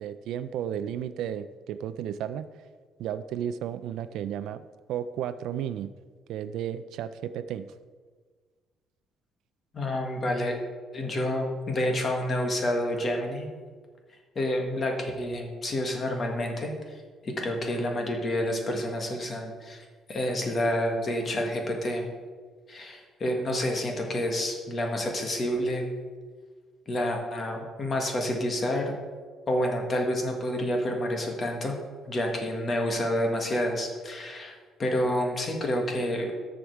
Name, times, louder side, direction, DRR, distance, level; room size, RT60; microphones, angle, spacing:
voice 1, 0.0-2.5 3.0-4.6 4.9-5.9 6.3-7.7, right 9 dB, 70° right, 11 dB, 0.3 m, -33 dB
voice 2, 9.7-10.6 10.9-13.5 14.3-22.0 22.7-25.9 26.9-28.9 29.5-31.8 32.1-36.3, left 1 dB, 30° left, 2 dB, 1.5 m, -29 dB
13.0 x 5.1 x 4.6 m, 1.5 s
cardioid pair, 155°, 0 cm